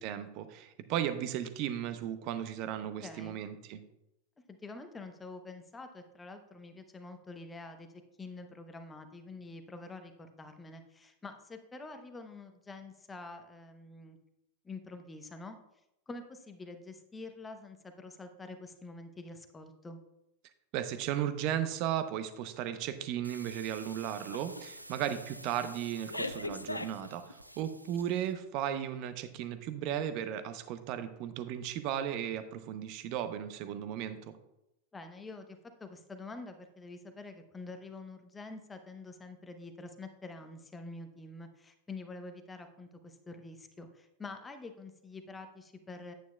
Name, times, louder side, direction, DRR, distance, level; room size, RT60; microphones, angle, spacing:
voice 1, 0.0-3.8 20.7-34.3, right 10 dB, 40° right, 11 dB, 0.7 m, -35 dB
voice 2, 3.0-3.4 4.5-7.9 8.2-14.2 14.6-15.6 16.1-20.0 34.9-46.1, left 3 dB, 15° left, 7 dB, 0.8 m, -47 dB
sound 1, 23.2-28.4, right 1 dB, 85° right, 0.4 m, -50 dB
sound 2, 24.3-24.6 25.0-25.3 26.1-27.6, left 2 dB, 85° left, 0.3 m, -38 dB
9.3 x 8.9 x 2.2 m, 0.87 s
figure-of-eight pair, 90°, 0 cm